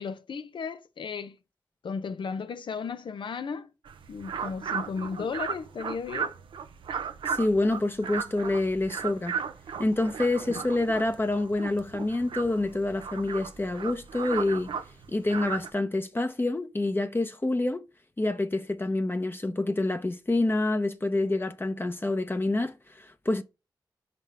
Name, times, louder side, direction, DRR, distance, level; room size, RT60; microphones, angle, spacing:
voice 1, 0.0-1.4 1.8-3.7 4.1-6.3 10.5-10.6, left 5 dB, 75° left, 0.7 m, -35 dB
sound 1, 3.8-15.7, right 7 dB, 85° right, 0.6 m, -36 dB
voice 2, 7.3-9.4 9.8-14.8 15.1-17.8 18.2-23.4, left 2 dB, 25° left, 0.9 m, -27 dB
5.3 x 3.3 x 5.5 m
cardioid pair, 45°, 8 cm